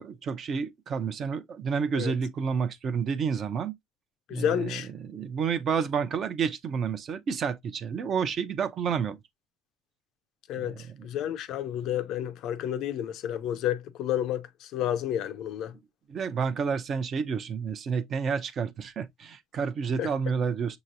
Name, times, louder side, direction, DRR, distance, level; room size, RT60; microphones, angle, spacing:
voice 1, 0.0-3.7 4.3-9.2 10.6-11.1 16.1-20.8, right 6 dB, 35° right, 0.7 m, -30 dB
voice 2, 4.3-4.9 10.5-15.7 20.0-20.1, left 10 dB, 55° left, 0.5 m, -30 dB
6.6 x 3.0 x 2.6 m
cardioid pair, 165°, 0 cm